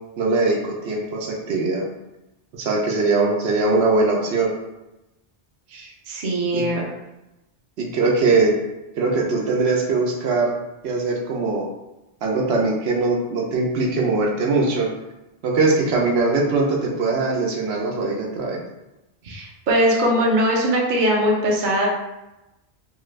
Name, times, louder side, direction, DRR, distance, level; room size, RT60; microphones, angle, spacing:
voice 1, 0.2-1.9 2.5-4.5 6.5-6.6 7.8-8.5 8.9-10.6 10.8-11.6 12.2-14.9 15.4-18.6, right 3 dB, 85° right, -2 dB, 0.9 m, -21 dB
voice 2, 5.7-6.8 19.2-21.9, equal, 55° right, -2 dB, 0.7 m, -21 dB
2.8 x 2.4 x 3.1 m, 0.98 s
omnidirectional pair, 1.0 m